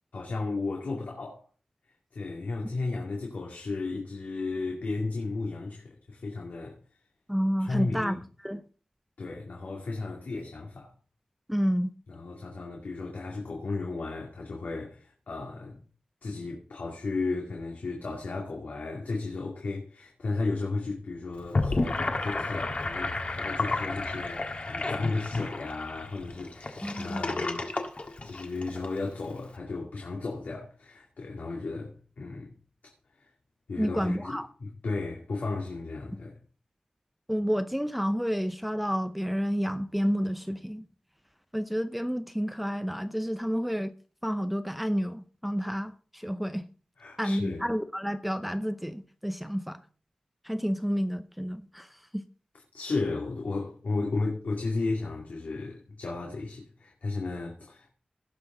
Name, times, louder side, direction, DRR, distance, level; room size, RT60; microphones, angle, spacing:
voice 1, 0.1-1.4 2.1-6.8 7.6-8.2 9.2-10.9 12.1-15.8 16.2-27.7 28.2-32.5 33.2-33.3 33.7-36.4 47.0-47.6 52.7-57.9, left 3 dB, 80° left, 2.3 m, -34 dB
voice 2, 7.3-8.6 11.5-11.9 26.8-27.2 33.8-34.5 37.3-40.9 41.5-43.9 44.2-46.7 47.2-49.8 50.4-52.2, equal, 5° right, 0.6 m, -30 dB
Gurgling / Sink (filling or washing), 21.4-28.9, left 2 dB, 50° left, 1.6 m, -31 dB
17.5 x 6.0 x 3.9 m
wide cardioid pair, 110°, 3 cm